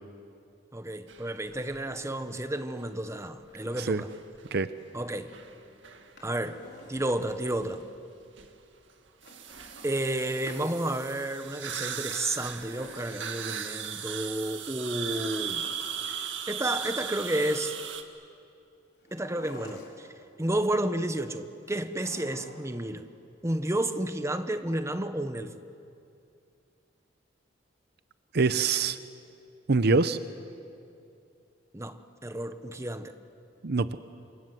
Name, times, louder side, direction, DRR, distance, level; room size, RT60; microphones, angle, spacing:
voice 1, 0.7-4.1 4.9-5.3 6.2-6.6 6.9-7.8 9.8-15.6 16.5-17.7 19.1-20.1 20.4-23.0 23.4-25.5 31.7-33.1, right 1 dB, 15° right, 9 dB, 1.2 m, -31 dB
sound 1, 1.1-2.0 2.8-2.9 3.4-4.5 4.9-6.1 6.7-6.8 7.0-7.1 7.3-8.0 8.4-8.5 9.2-18.0, right 8 dB, 85° right, 1.9 m, -38 dB
Drawer open or close, 6.0-7.5 9.2-10.7 11.9-13.6 14.9-16.5 19.0-20.2 21.7-22.8 23.0-23.1, left 2 dB, 65° left, 5.4 m, -50 dB
voice 2, 28.3-29.0 29.7-30.2 33.6-33.9, right 4 dB, 60° right, 12 dB, 0.7 m, -24 dB
28.0 x 27.0 x 7.9 m, 2.5 s
head